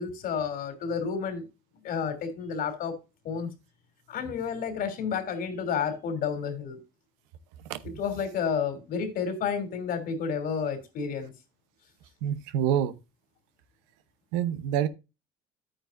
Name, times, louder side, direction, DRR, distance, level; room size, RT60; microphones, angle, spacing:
voice 1, 0.0-1.4 1.8-3.0 3.2-3.5 4.1-6.8 8.0-11.3, left 6 dB, 65° left, 3.1 m, -31 dB
voice 2, 12.2-13.0 14.3-14.9, right 10 dB, 85° right, 0.9 m, -27 dB
10.5 x 8.9 x 2.5 m
supercardioid pair, 80°, 16 cm